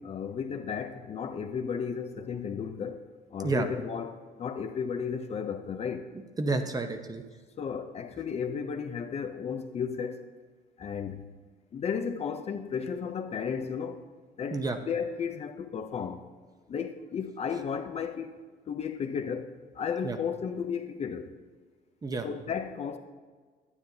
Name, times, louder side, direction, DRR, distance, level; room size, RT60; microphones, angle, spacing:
voice 1, 0.0-6.1 7.6-10.3 10.8-11.2 11.7-14.0 14.4-16.3 16.7-18.3 18.7-21.3 22.2-23.0, left 6 dB, 40° left, 0.5 m, -34 dB
voice 2, 6.1-7.2 14.5-14.8 20.0-20.2 22.0-22.3, right 3 dB, 20° right, 0.7 m, -30 dB
9.7 x 8.8 x 2.7 m
cardioid pair, 110°, 17 cm